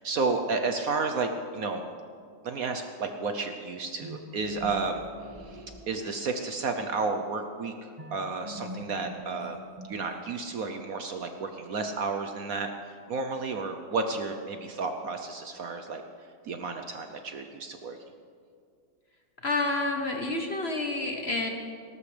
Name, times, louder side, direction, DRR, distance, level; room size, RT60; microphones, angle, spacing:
voice 1, 0.0-1.8 2.4-5.0 5.4-9.6 9.9-16.0 16.4-18.0, right 4 dB, 60° right, 6 dB, 1.1 m, -32 dB
sound 1, 4.0-6.6 8.0-10.4, equal, 20° right, 1.2 m, -43 dB
voice 2, 19.4-21.5, left 2 dB, 40° left, 3 dB, 1.2 m, -29 dB
19.0 x 18.5 x 3.3 m, 2.3 s
omnidirectional pair, 2.0 m